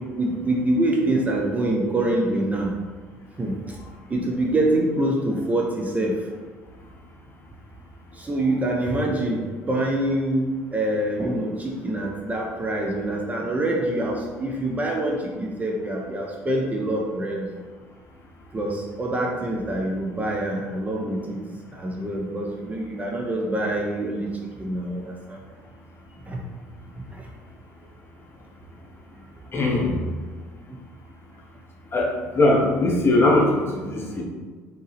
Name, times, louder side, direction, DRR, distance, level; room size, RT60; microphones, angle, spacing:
voice 1, 0.2-2.7 3.4-3.8 4.1-6.3 8.1-17.5 18.5-21.4 21.7-25.4 26.3-26.4 27.0-27.3, right 1 dB, 20° right, -1 dB, 0.6 m, -25 dB
voice 2, 29.5-29.9 31.9-34.2, left 2 dB, 30° left, -1 dB, 1.0 m, -20 dB
4.5 x 3.0 x 3.1 m, 1.5 s
figure-of-eight pair, 55°, 8 cm